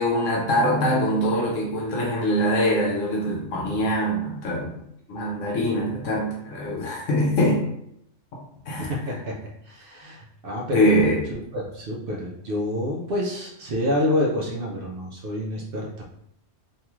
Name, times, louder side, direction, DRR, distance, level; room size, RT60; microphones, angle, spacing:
voice 1, 0.0-4.8 5.1-7.6 8.7-8.9 10.7-11.2, equal, 75° left, -2 dB, 1.0 m, -23 dB
voice 2, 8.8-11.0 11.5-16.0, left 1 dB, 60° right, -1 dB, 0.6 m, -28 dB
2.7 x 2.3 x 3.0 m, 0.75 s
omnidirectional pair, 1.3 m